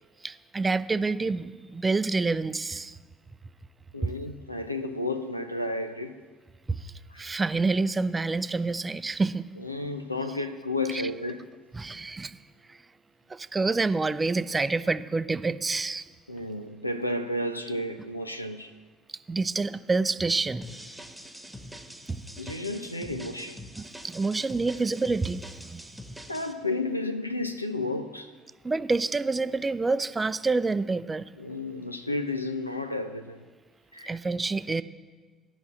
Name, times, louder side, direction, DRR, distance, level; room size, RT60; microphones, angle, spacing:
voice 1, 0.2-2.9 4.0-4.1 6.7-6.9 7.2-9.4 10.9-11.0 11.7-12.4 13.3-16.1 19.3-20.6 22.1-22.2 23.8-25.8 28.6-31.3 34.1-34.8, right 3 dB, 25° right, 14 dB, 0.5 m, -27 dB
voice 2, 3.9-6.2 7.1-7.2 9.6-11.5 16.3-18.7 22.4-23.6 26.3-28.3 31.4-33.4 33.9-34.2, left 2 dB, 90° left, 8 dB, 0.5 m, -32 dB
sound 1, 20.6-26.5, equal, ahead, 1.4 m, -44 dB
12.0 x 6.0 x 7.7 m, 1.4 s
figure-of-eight pair, 50°, 0 cm